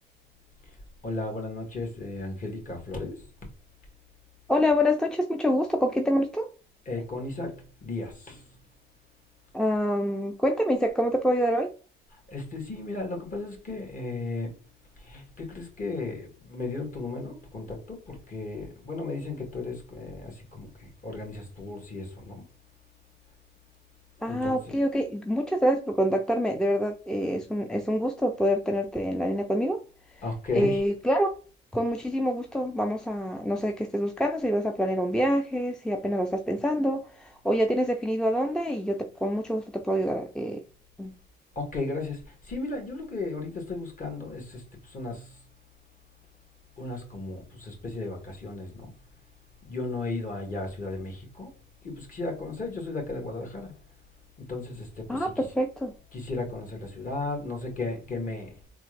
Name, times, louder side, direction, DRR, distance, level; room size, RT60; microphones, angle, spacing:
voice 1, 1.0-3.3 6.9-8.4 12.3-14.6 15.0-22.4 24.3-24.6 30.2-30.8 41.6-45.4 46.8-48.9 49.7-51.6 51.8-53.7 54.4-55.3 56.1-58.5, left 3 dB, 40° left, 1.8 m, -35 dB
voice 2, 4.5-6.5 9.5-11.7 24.2-29.8 30.5-31.3 31.7-40.6 41.0-41.2 55.1-55.9, equal, 5° left, 0.4 m, -26 dB
3.5 x 2.5 x 3.2 m
cardioid pair, 90°, 20 cm